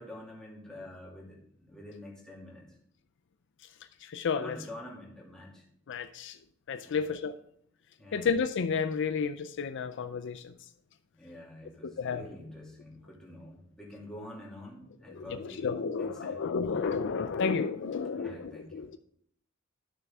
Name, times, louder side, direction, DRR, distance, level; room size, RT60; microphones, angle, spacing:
voice 1, 0.0-2.7 4.4-5.6 6.8-7.0 8.0-8.3 11.1-16.4 18.2-18.8, left 1 dB, 5° left, -5 dB, 2.6 m, -47 dB
voice 2, 4.0-4.6 5.9-6.4 6.7-7.4 8.1-10.5 11.8-12.3 15.2-19.0, left 5 dB, 60° left, 9 dB, 0.4 m, -31 dB
12.0 x 6.6 x 3.6 m, 0.68 s
head